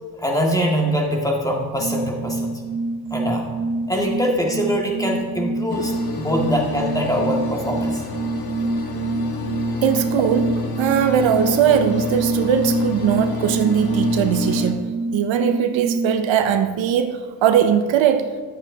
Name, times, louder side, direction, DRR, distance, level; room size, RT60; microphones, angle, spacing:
voice 1, 0.1-2.6 3.1-3.5 3.9-8.0, equal, 5° left, 1.9 m, -23 dB
sound 1, 1.8-16.3, right 3 dB, 35° right, 1.3 m, -26 dB
sound 2, 5.7-14.7, left 4 dB, 50° left, 1.2 m, -29 dB
voice 2, 9.8-10.5 10.8-18.4, right 8 dB, 70° right, 0.7 m, -20 dB
10.5 x 8.8 x 2.8 m
supercardioid pair, 55°, 47 cm